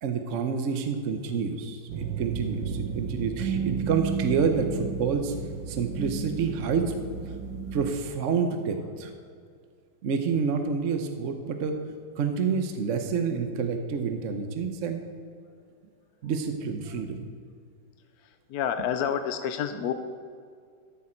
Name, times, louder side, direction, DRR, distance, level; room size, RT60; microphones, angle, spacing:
voice 1, 0.0-5.3 5.7-6.9 7.7-9.1 10.0-11.8 12.2-15.0 16.2-17.3, right 5 dB, 55° right, 6 dB, 0.9 m, -28 dB
sound 1, 1.9-7.9, right 6 dB, 85° right, 1.5 m, -33 dB
voice 2, 18.2-19.9, left 8 dB, 70° left, 9 dB, 1.0 m, -29 dB
13.5 x 8.0 x 4.4 m, 2.2 s
omnidirectional pair, 1.9 m